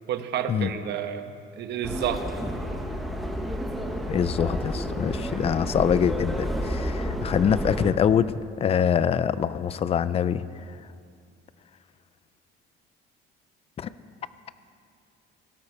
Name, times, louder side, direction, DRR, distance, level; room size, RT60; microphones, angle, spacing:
voice 1, 0.1-2.2, right 9 dB, 55° right, 8 dB, 1.0 m, -30 dB
Subway metro underground, 1.8-7.9, equal, ahead, 1.0 m, -30 dB
voice 2, 4.1-8.3 8.6-10.4 13.8-13.9, left 8 dB, 30° left, 15 dB, 0.4 m, -24 dB
18.0 x 16.0 x 4.3 m, 2.4 s
cardioid pair, 145°, 21 cm